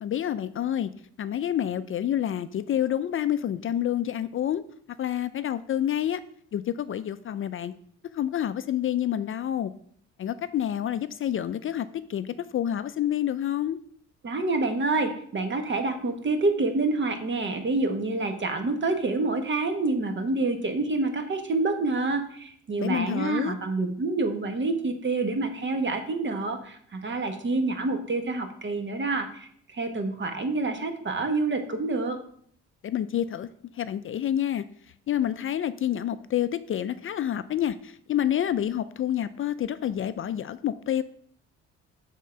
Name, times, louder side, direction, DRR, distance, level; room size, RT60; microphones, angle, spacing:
voice 1, 0.0-0.9 1.2-4.6 5.0-6.2 6.5-7.7 8.1-9.7 10.2-13.8 22.8-23.5 32.8-33.5 33.7-34.6 35.1-41.0, left 10 dB, 45° left, 13 dB, 0.4 m, -28 dB
voice 2, 14.2-32.2, right 3 dB, 40° right, 7 dB, 1.2 m, -27 dB
7.3 x 3.7 x 5.6 m, 0.62 s
cardioid pair, 90°, 30 cm